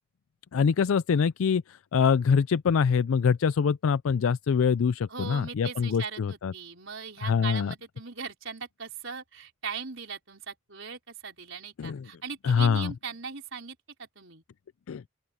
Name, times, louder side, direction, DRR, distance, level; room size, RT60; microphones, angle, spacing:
voice 1, 0.5-6.5 7.2-7.7 11.8-12.1 12.4-12.9 14.9-15.0, left 6 dB, 70° left, 0.4 m, -24 dB
voice 2, 5.1-14.4, right 5 dB, 60° right, 4.9 m, -39 dB
open air
head